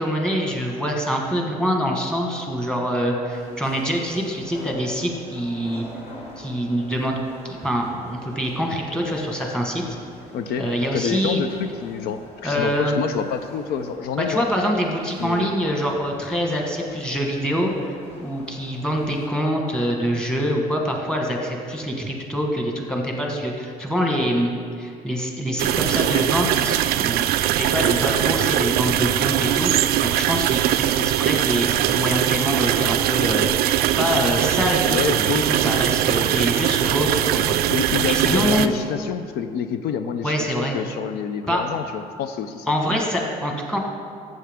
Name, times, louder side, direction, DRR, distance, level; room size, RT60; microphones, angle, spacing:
voice 1, 0.0-5.8 6.4-7.2 7.4-9.8 10.6-11.4 12.4-12.9 14.2-24.5 24.8-27.3 27.6-29.7 30.0-33.5 34.0-38.7 40.2-40.8 41.5-41.6 42.7-43.8, equal, 5° left, 0 dB, 1.4 m, -25 dB
sound 1, 3.3-19.3, left 1 dB, 40° left, 2.5 m, -45 dB
voice 2, 10.3-14.4 15.2-15.5 34.8-35.5 37.7-42.7, left 7 dB, 75° left, 8 dB, 0.5 m, -27 dB
sound 2, 25.6-38.7, right 12 dB, 70° right, 0.4 m, -21 dB
13.0 x 7.6 x 3.6 m, 2.2 s
cardioid pair, 125°, 16 cm